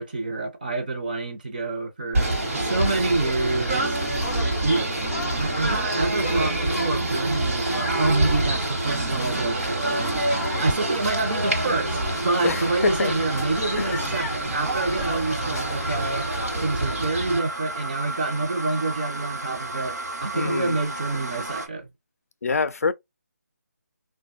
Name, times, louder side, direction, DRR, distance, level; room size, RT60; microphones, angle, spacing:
voice 1, 0.0-4.8 5.3-16.2 16.6-20.0 20.2-21.9, right 3 dB, 30° right, 0.6 m, -27 dB
Singing / Bird, 2.1-17.4, right 2 dB, 55° right, 1.1 m, -26 dB
sound 1, 2.2-16.6, left 1 dB, 15° left, 0.5 m, -37 dB
sound 2, 7.1-21.7, right 1 dB, 75° right, 0.9 m, -35 dB
voice 2, 12.4-13.1 13.8-14.0 20.3-20.8 22.4-22.9, left 4 dB, 65° left, 0.4 m, -25 dB
3.2 x 2.2 x 2.5 m
figure-of-eight pair, 175°, 9 cm